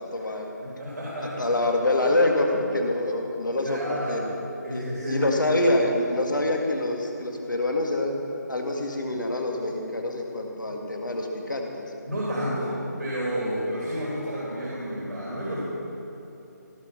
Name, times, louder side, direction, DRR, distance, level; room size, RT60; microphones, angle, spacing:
voice 1, 0.0-0.5 1.2-4.2 4.7-8.2 8.5-11.8, left 1 dB, 80° left, 2 dB, 1.8 m, -26 dB
voice 2, 0.6-1.4 3.6-4.3 4.6-5.3 12.0-15.6, equal, 70° right, -7 dB, 3.1 m, -30 dB
16.5 x 5.5 x 6.0 m, 3.0 s
figure-of-eight pair, 160°, 10 cm